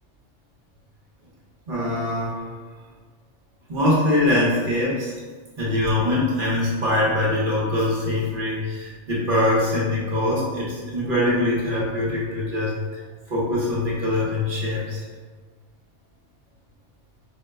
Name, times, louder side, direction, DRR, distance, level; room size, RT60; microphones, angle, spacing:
voice 1, 1.7-2.5 3.7-5.1 5.6-13.0 13.3-15.0, left 1 dB, 50° right, -6 dB, 0.9 m, -23 dB
4.6 x 2.0 x 2.2 m, 1.4 s
omnidirectional pair, 1.2 m